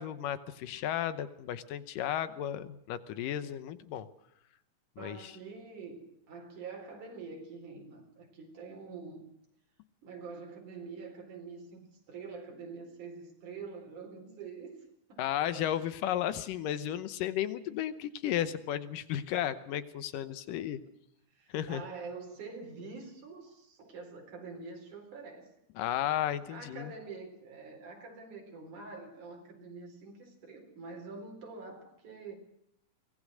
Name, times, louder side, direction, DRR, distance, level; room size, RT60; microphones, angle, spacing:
voice 1, 0.0-4.1 5.0-5.3 15.2-20.8 21.5-21.8 25.8-26.9, left 11 dB, 85° left, 2.6 m, -34 dB
voice 2, 5.0-9.2 10.0-15.2 15.5-15.7 20.5-20.8 21.3-25.5 26.5-32.3, right 4 dB, 65° right, 5.6 m, -46 dB
23.5 x 19.0 x 6.4 m
omnidirectional pair, 3.8 m